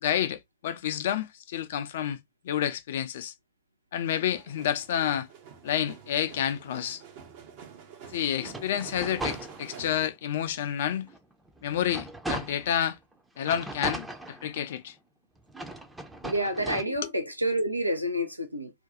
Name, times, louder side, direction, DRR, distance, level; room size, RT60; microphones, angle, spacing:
voice 1, 0.0-2.2 2.4-3.3 3.9-5.3 5.6-7.0 8.1-11.1 11.6-13.0 13.4-14.9 17.0-17.1, left 10 dB, 60° left, 0.4 m, -29 dB
sound 1, 4.2-10.1, right 7 dB, 50° right, 0.7 m, -48 dB
sound 2, 8.4-10.0 10.5-10.6 11.1-12.8 13.4-14.9 15.5-16.8, right 1 dB, 5° right, 0.5 m, -38 dB
voice 2, 16.2-18.7, right 1 dB, 85° right, 0.5 m, -28 dB
2.5 x 2.2 x 3.8 m
figure-of-eight pair, 90°, 0 cm